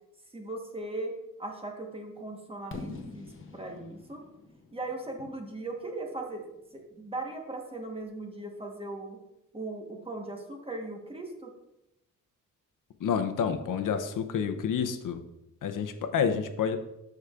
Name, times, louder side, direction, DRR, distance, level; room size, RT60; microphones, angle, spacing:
voice 1, 0.3-1.1 1.4-4.2 4.7-9.2 9.5-11.5, right 2 dB, 15° right, 1 dB, 1.2 m, -38 dB
Fireworks, 2.7-6.6, left 3 dB, 40° left, 0.8 m, -45 dB
voice 2, 13.0-15.2 15.6-16.8, left 7 dB, 75° left, 8 dB, 0.7 m, -29 dB
13.0 x 4.8 x 2.4 m, 0.89 s
wide cardioid pair, 140°, 32 cm